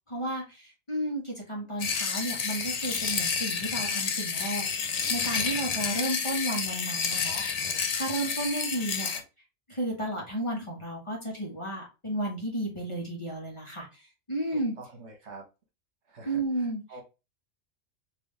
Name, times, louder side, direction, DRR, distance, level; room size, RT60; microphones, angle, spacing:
voice 1, 0.1-7.4 7.7-9.1 9.7-14.7 16.2-16.8, right 1 dB, 25° left, -2 dB, 1.2 m, -33 dB
sound 1, 1.8-9.2, left 5 dB, 55° left, 0.4 m, -30 dB
voice 2, 8.2-9.2 14.5-15.5 16.1-17.0, right 3 dB, 65° right, 1 dB, 1.5 m, -48 dB
3.6 x 3.0 x 3.2 m, 0.27 s
omnidirectional pair, 1.3 m